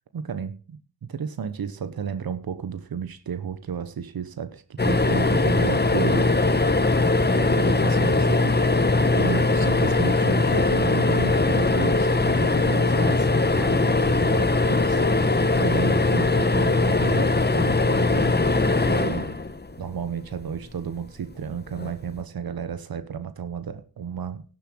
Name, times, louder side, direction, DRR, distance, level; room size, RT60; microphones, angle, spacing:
voice 1, 0.1-0.6 1.1-6.6 7.2-8.7 9.1-15.0 15.6-19.4 19.8-24.4, right 7 dB, 70° right, 11 dB, 1.0 m, -33 dB
sound 1, 4.8-20.1 21.7-21.9 22.2-22.3, left 3 dB, 25° left, 1.2 m, -21 dB
11.0 x 7.2 x 6.1 m, 0.39 s
cardioid pair, 45°, 37 cm